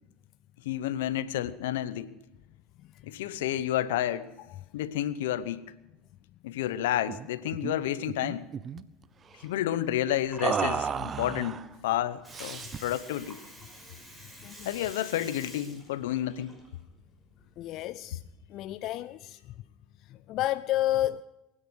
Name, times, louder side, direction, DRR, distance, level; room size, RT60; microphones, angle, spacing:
voice 1, 0.6-2.1 3.1-4.3 4.7-5.6 6.4-8.5 9.4-13.4 14.6-16.5, left 12 dB, 80° left, 0.8 m, -30 dB
sound 1, 7.1-7.3 7.5-7.8 8.1-8.8 10.4-11.7 12.3-12.9, right 7 dB, 35° right, 0.7 m, -32 dB
Water, 10.3-17.9, equal, 15° right, 6.0 m, -47 dB
voice 2, 14.4-14.7 17.6-18.2 18.5-19.5 20.1-21.2, left 14 dB, 55° left, 0.4 m, -31 dB
23.0 x 10.0 x 6.3 m
hypercardioid pair, 85°, 0 cm